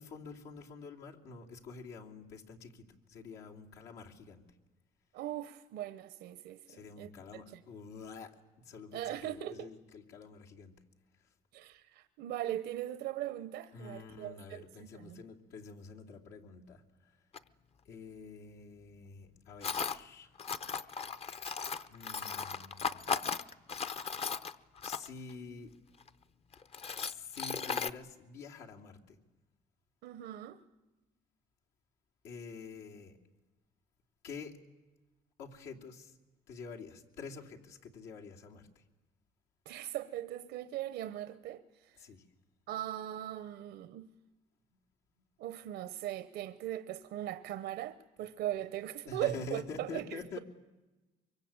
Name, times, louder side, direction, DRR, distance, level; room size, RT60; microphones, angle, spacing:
voice 1, 0.0-4.4 6.7-8.3 8.7-10.8 13.7-16.8 17.9-20.3 21.9-23.1 24.8-25.7 27.0-29.2 32.2-33.2 34.2-34.6 35.4-36.1 36.5-38.7 42.0-42.2 49.1-50.4, left 4 dB, 80° left, 3.0 m, -47 dB
voice 2, 5.1-7.6 8.9-9.7 11.5-15.2 30.0-30.6 39.7-41.9 42.7-44.1 45.4-50.4, right 13 dB, 80° right, 0.9 m, -40 dB
Tools, 17.3-17.4 19.6-20.0 20.4-25.3 26.0-26.1 26.5-27.9, left 6 dB, 35° left, 0.8 m, -36 dB
24.0 x 23.0 x 8.8 m
cardioid pair, 110°, 17 cm